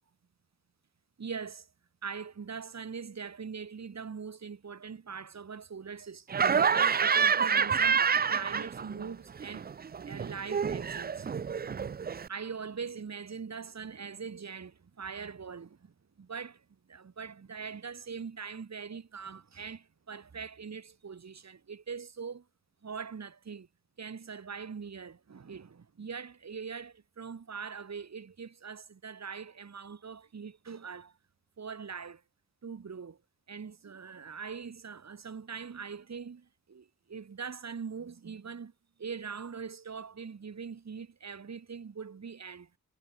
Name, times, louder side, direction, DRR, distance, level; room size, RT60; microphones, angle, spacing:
voice 1, 1.2-1.7 2.0-9.7 10.0-11.3 12.3-22.5 22.8-23.7 24.0-31.2 31.6-32.2 32.6-33.2 33.5-38.7 39.0-42.7, right 6 dB, 60° right, 3.5 m, -42 dB
Laughter, 6.3-9.1 9.4-12.3, right 6 dB, 30° right, 0.4 m, -28 dB
cardioid pair, 70°, 31 cm